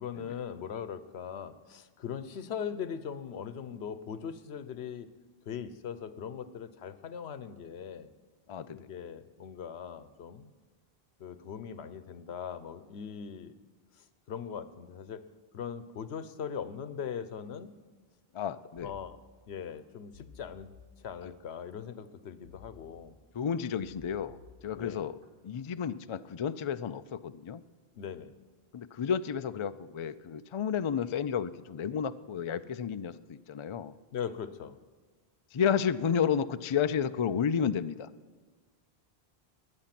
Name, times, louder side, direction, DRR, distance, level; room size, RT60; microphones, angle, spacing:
voice 1, 0.0-5.1 5.5-8.1 8.7-10.5 11.2-13.5 13.9-15.2 15.5-17.7 18.8-19.2 19.5-20.7 21.0-23.2 24.7-25.0 27.9-28.4 34.1-34.8, left 7 dB, 80° left, 13 dB, 1.0 m, -40 dB
voice 2, 8.5-8.9 18.3-18.9 21.2-21.3 23.3-24.4 24.6-25.2 25.4-27.6 28.7-33.9 35.5-38.1, left 7 dB, 50° left, 12 dB, 0.3 m, -31 dB
sound 1, 18.8-19.7 20.1-21.6 22.4-23.4 23.8-25.3 25.7-26.1, left 5 dB, 55° right, 2.0 m, -56 dB
21.0 x 8.6 x 5.9 m, 1.4 s
omnidirectional pair, 1.1 m